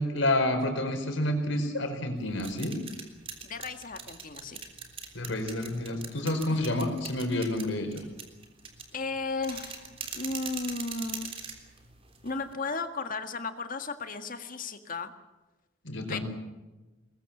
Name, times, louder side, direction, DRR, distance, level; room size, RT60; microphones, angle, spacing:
voice 1, 0.0-2.8 5.1-8.0 15.8-16.2, left 1 dB, 80° left, 5 dB, 4.8 m, -29 dB
sound 1, 2.2-12.5, right 5 dB, 30° right, 3.5 m, -42 dB
voice 2, 3.4-4.6 6.5-6.6 8.9-11.3 12.2-15.1 16.1-16.2, left 3 dB, 45° left, 7 dB, 1.9 m, -35 dB
22.5 x 21.0 x 7.3 m, 1.1 s
head